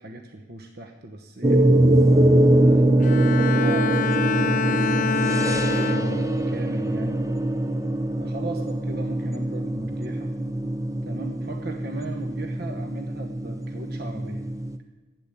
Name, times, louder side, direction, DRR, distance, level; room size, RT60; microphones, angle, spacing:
voice 1, 0.0-1.6 2.4-7.2 8.2-10.3 11.1-14.4, right 2 dB, 50° right, 4 dB, 1.1 m, -38 dB
sound 1, 1.4-14.8, right 1 dB, 15° right, 0.6 m, -22 dB
Bowed string instrument, 3.0-6.6 7.0-7.4, left 5 dB, 40° left, 0.6 m, -27 dB
12.5 x 8.5 x 8.3 m, 1.2 s
head